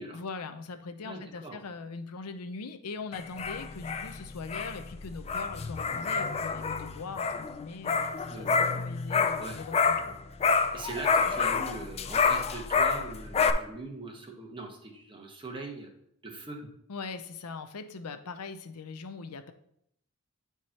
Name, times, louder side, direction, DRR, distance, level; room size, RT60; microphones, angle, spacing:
voice 1, 0.1-10.0 16.9-19.5, left 4 dB, 85° left, 9 dB, 0.6 m, -41 dB
voice 2, 1.0-1.6 8.3-8.6 9.4-9.6 10.7-15.9 16.2-16.6, right 3 dB, 25° right, 1 dB, 1.1 m, -41 dB
sound 1, 3.1-10.1 10.4-13.5, left 5 dB, 30° left, 0.4 m, -28 dB
9.0 x 4.7 x 2.8 m, 0.74 s
head